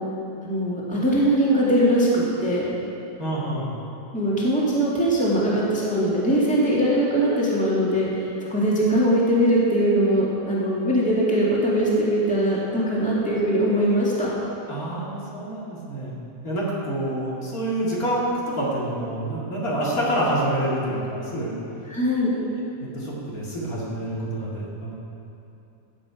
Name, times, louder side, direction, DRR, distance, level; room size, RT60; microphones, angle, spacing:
voice 1, 0.4-2.6 4.1-14.3 21.9-22.3, right 1 dB, 5° left, -7 dB, 2.1 m, -21 dB
voice 2, 3.2-3.7 14.7-16.1 16.4-21.5 22.3-22.4 22.8-24.9, right 1 dB, 60° left, -6 dB, 2.7 m, -27 dB
16.0 x 8.0 x 5.0 m, 2.8 s
omnidirectional pair, 1.8 m